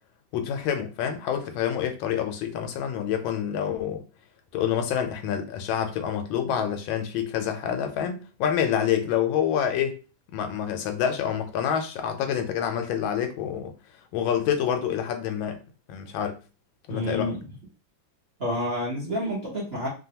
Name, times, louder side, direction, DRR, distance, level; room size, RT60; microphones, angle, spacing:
voice 1, 0.3-4.0 4.5-10.0 10.3-13.7 14.1-15.6 15.9-16.4 16.9-17.3, left 9 dB, 85° left, 1.4 m, -27 dB
voice 2, 16.9-17.4 18.4-19.9, equal, 40° right, 0.9 m, -29 dB
3.3 x 2.2 x 2.7 m
omnidirectional pair, 2.1 m